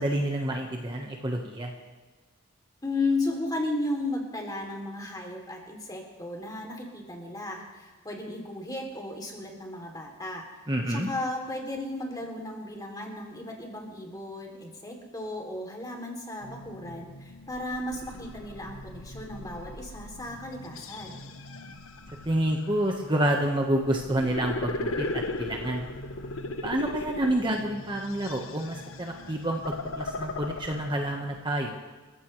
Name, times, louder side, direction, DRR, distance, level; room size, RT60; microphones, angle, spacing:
voice 1, 0.0-1.7 10.7-11.1 22.2-25.8 26.6-29.6 30.0-31.8, right 1 dB, 25° right, 1 dB, 1.3 m, -28 dB
voice 2, 2.8-10.5 10.9-21.2, left 2 dB, 20° left, 1 dB, 3.0 m, -34 dB
sound 1, 16.4-31.4, left 2 dB, 80° left, 1.2 m, -38 dB
29.0 x 15.0 x 3.3 m, 1.3 s
head